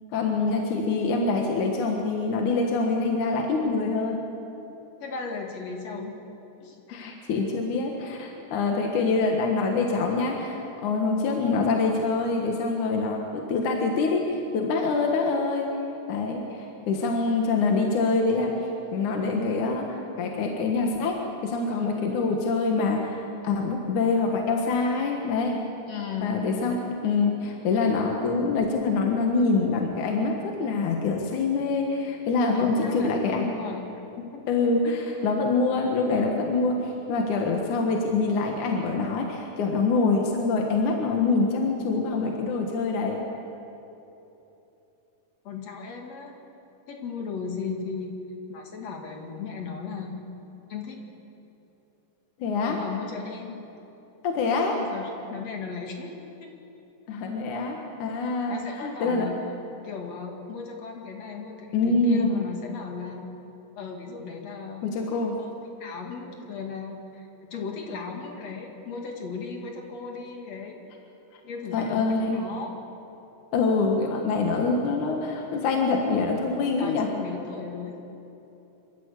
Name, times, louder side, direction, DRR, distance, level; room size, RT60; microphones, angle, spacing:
voice 1, 0.1-4.2 6.9-15.7 16.1-18.5 18.9-25.6 26.2-26.8 27.0-33.5 34.5-43.2 52.4-52.8 54.2-54.8 57.1-59.3 61.7-62.3 64.8-65.4 71.7-72.4 73.5-77.1, left 3 dB, 75° left, 1 dB, 2.9 m, -25 dB
voice 2, 5.0-6.1 6.4-6.8 25.9-26.5 32.5-33.8 34.2-34.4 45.4-46.4 46.9-48.1 48.5-50.1 50.7-51.0 52.7-53.6 54.7-56.1 56.4-56.5 58.5-59.5 59.8-63.3 63.8-64.8 65.4-65.5 65.8-70.8 71.4-72.7 76.8-77.9, left 5 dB, 55° left, 2 dB, 3.3 m, -36 dB
26.0 x 13.5 x 8.3 m, 3.0 s
omnidirectional pair, 3.6 m